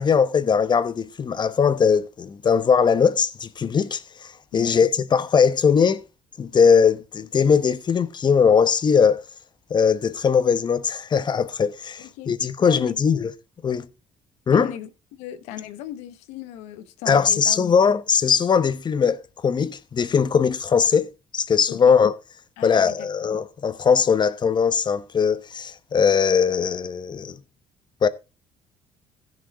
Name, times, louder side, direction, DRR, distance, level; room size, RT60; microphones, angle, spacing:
voice 1, 0.0-6.0 6.4-9.2 9.7-13.3 13.6-13.9 14.5-14.7 17.1-22.1 22.6-27.4 28.0-28.1, left 6 dB, 40° left, 1.1 m, -20 dB
voice 2, 12.0-12.3 12.6-13.0 14.5-17.6 21.7-22.0 22.6-23.1, left 11 dB, 90° left, 1.1 m, -37 dB
15.5 x 6.5 x 4.1 m
supercardioid pair, 70°, 11 cm